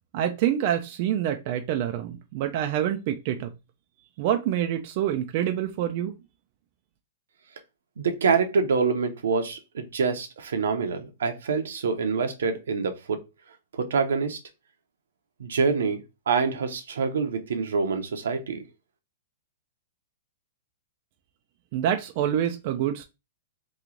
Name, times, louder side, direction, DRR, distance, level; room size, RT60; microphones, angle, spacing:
voice 1, 0.1-3.5 4.2-6.1 21.7-23.0, right 10 dB, 50° right, 0.4 m, -26 dB
voice 2, 8.0-13.2 13.7-14.4 15.4-16.0 16.3-18.6, right 5 dB, 85° right, 0.8 m, -26 dB
3.0 x 2.3 x 3.7 m
hypercardioid pair, 140°, 0 cm